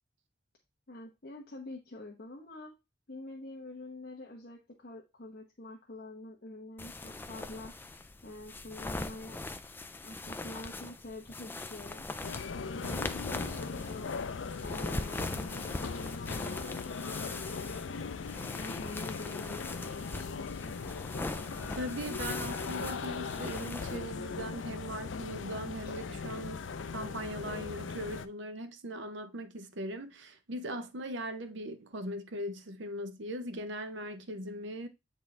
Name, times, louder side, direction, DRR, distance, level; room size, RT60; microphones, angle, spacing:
voice 1, 0.9-2.7 3.1-7.7 8.2-9.4 10.0-12.1 12.5-18.1 18.5-20.7 25.8-25.9, left 2 dB, 50° left, 1.0 m, -46 dB
sound 1, 6.8-24.0, left 2 dB, 10° left, 0.4 m, -41 dB
sound 2, 12.2-28.3, left 5 dB, 70° left, 0.5 m, -39 dB
voice 2, 21.7-26.6 26.9-34.9, right 1 dB, 65° right, 0.8 m, -39 dB
8.2 x 4.3 x 3.3 m
head